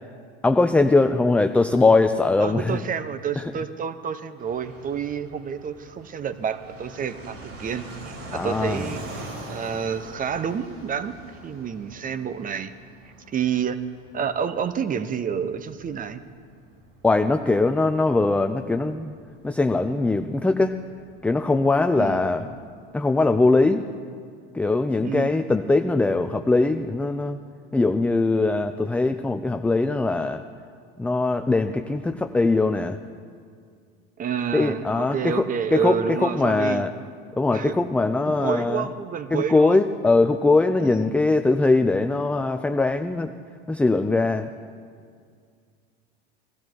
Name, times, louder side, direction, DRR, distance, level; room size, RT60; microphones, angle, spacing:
voice 1, 0.4-2.8 3.4-3.5 8.3-8.9 17.0-19.2 19.4-20.8 21.2-22.5 22.9-23.8 24.5-27.4 27.7-30.4 31.0-33.0 34.5-35.4 35.7-36.9 37.4-38.8 39.3-43.3 43.7-44.5, left 3 dB, 5° left, 7 dB, 0.4 m, -21 dB
voice 2, 2.4-12.7 13.3-13.8 14.1-16.2 22.0-22.2 25.0-25.3 34.2-36.9 37.5-37.7 38.4-39.8 40.8-41.2, right 7 dB, 30° right, 12 dB, 0.9 m, -29 dB
Fixed-wing aircraft airplane, 4.4-22.7, right 2 dB, 55° right, 4.2 m, -44 dB
18.5 x 12.5 x 4.6 m, 2.1 s
supercardioid pair, 100°, 29 cm